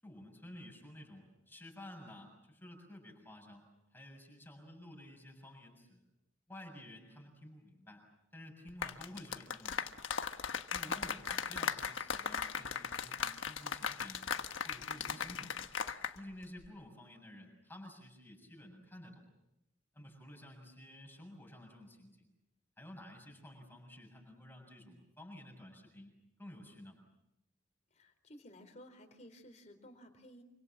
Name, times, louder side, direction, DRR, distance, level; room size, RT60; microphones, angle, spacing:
voice 1, 0.0-6.0 6.5-8.1 8.3-10.0 10.7-14.2 14.6-15.6 16.1-19.2 19.9-22.3 22.8-26.1 26.4-27.0, left 1 dB, 10° left, 1 dB, 7.2 m, -52 dB
sound 1, 8.7-16.2 16.4-16.7, left 6 dB, 85° left, 1.4 m, -38 dB
voice 2, 27.9-30.4, equal, 35° left, 5 dB, 4.0 m, -55 dB
28.0 x 25.5 x 7.5 m, 0.88 s
head